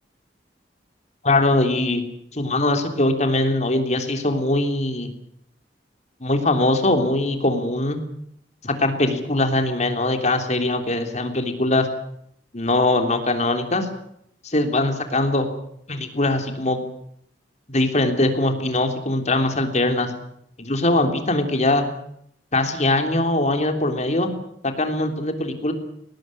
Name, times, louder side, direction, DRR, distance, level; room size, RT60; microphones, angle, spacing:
voice 1, 1.2-2.0 2.3-5.1 6.2-8.0 8.6-11.9 12.5-13.9 14.4-15.5 15.9-16.8 17.7-20.1 20.6-21.8 22.5-24.3 24.6-25.7, left 2 dB, 40° left, 6 dB, 3.4 m, -21 dB
21.0 x 19.0 x 9.9 m, 0.72 s
head